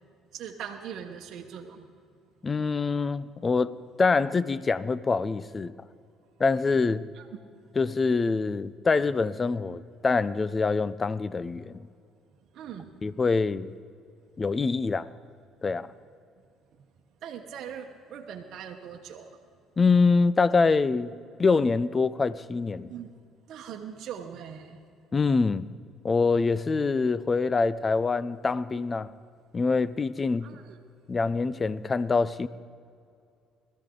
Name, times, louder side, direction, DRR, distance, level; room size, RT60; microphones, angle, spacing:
voice 1, 0.3-1.9 7.1-7.3 12.5-12.9 17.2-19.3 22.9-23.1 23.5-24.8 30.4-30.8, right 8 dB, 65° right, 1.0 m, -41 dB
voice 2, 2.4-5.7 6.4-7.0 7.8-11.8 13.0-13.7 14.4-15.1 15.6-15.9 19.8-21.1 21.4-22.9 25.1-25.7 26.0-29.1 29.5-30.5 31.1-32.5, left 4 dB, 30° left, 0.5 m, -25 dB
21.0 x 14.0 x 3.8 m
supercardioid pair, 80°, 0 cm